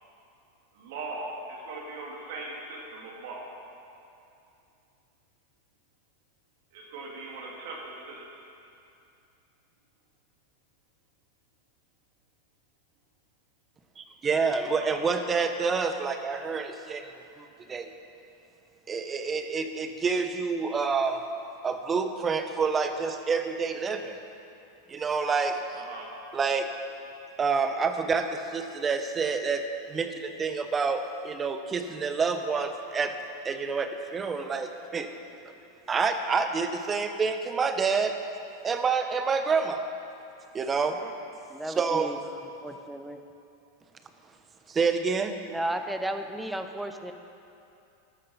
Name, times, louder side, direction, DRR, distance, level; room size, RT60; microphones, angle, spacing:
voice 1, 0.7-3.5 6.7-8.2 14.8-15.0 25.7-26.1 35.7-35.9 40.9-41.1, right 2 dB, 65° right, -2 dB, 2.3 m, -40 dB
voice 2, 14.0-17.1 17.4-17.9 18.9-21.2 21.6-24.1 24.9-25.6 26.3-26.7 27.4-29.6 29.9-33.1 33.4-35.1 35.9-38.2 38.6-39.8 40.5-41.0 41.8-42.1 44.7-45.4, right 5 dB, 25° right, 7 dB, 1.0 m, -28 dB
voice 3, 41.5-42.2 42.6-43.2 45.5-47.1, right 1 dB, 5° right, 7 dB, 0.9 m, -34 dB
14.0 x 12.0 x 4.3 m, 2.7 s
hypercardioid pair, 105°, 0 cm